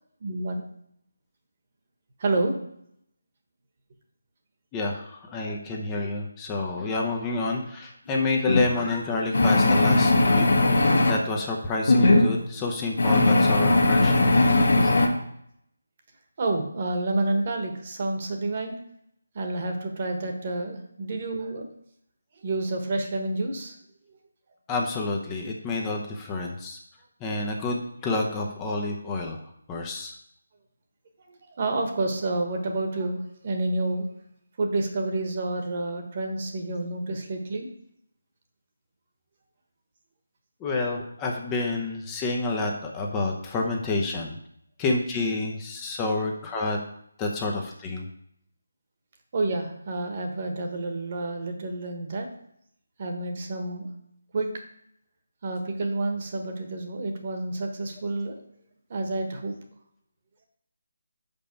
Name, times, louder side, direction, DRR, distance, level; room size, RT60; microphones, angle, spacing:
voice 1, 0.2-0.6 2.2-2.6 16.4-18.8 19.3-21.7 22.3-23.7 24.1-24.2 31.3-34.0 34.6-37.7 49.3-52.3 53.0-53.9 54.3-54.5 55.4-58.3 58.9-59.5, right 2 dB, 35° right, 4 dB, 1.2 m, -29 dB
voice 2, 4.7-10.5 10.7-14.3 14.8-14.9 24.7-26.8 27.2-29.4 29.7-30.2 40.6-44.4 44.8-46.8 47.2-48.1, left 3 dB, 15° left, 0 dB, 0.7 m, -29 dB
sound 1, 8.5-8.7 9.3-11.2 11.9-12.2 13.0-15.1, left 2 dB, 70° left, 1.4 m, -19 dB
5.7 x 5.3 x 5.3 m, 0.72 s
figure-of-eight pair, 165°, 0 cm